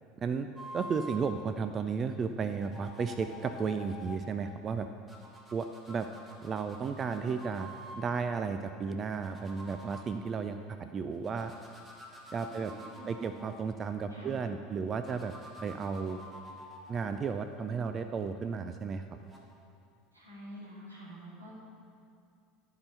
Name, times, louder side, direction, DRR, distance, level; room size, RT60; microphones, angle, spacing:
voice 1, 0.2-4.9 5.5-6.1 6.4-7.7 8.0-11.5 12.3-12.7 13.1-15.3 15.6-16.2 16.9-19.0, right 5 dB, 30° right, 8 dB, 0.4 m, -34 dB
sound 1, 0.6-1.2 2.3-4.2 5.1-8.0 8.9-10.1 11.1-14.3 15.0-18.3 19.2-19.4, left 1 dB, 15° right, 2.1 m, -49 dB
voice 2, 12.5-13.3 14.1-14.3 20.1-21.5, equal, 85° right, -6 dB, 2.6 m, -48 dB
12.0 x 5.7 x 6.6 m, 2.4 s
figure-of-eight pair, 70°, 0 cm